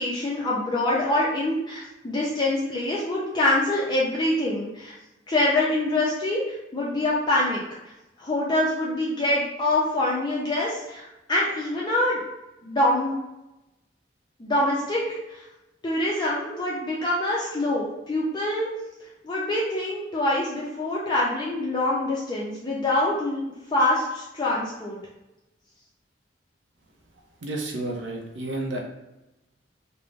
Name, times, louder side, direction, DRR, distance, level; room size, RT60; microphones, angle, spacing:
voice 1, 0.0-4.9 5.3-7.6 8.2-12.2 12.6-13.1 14.4-15.0 15.3-15.5 15.8-18.7 19.2-23.4 23.7-25.0, left 1 dB, 25° left, -5 dB, 0.4 m, -25 dB
voice 2, 27.4-28.8, right 2 dB, 85° right, 0 dB, 0.6 m, -31 dB
2.5 x 2.0 x 3.1 m, 0.95 s
head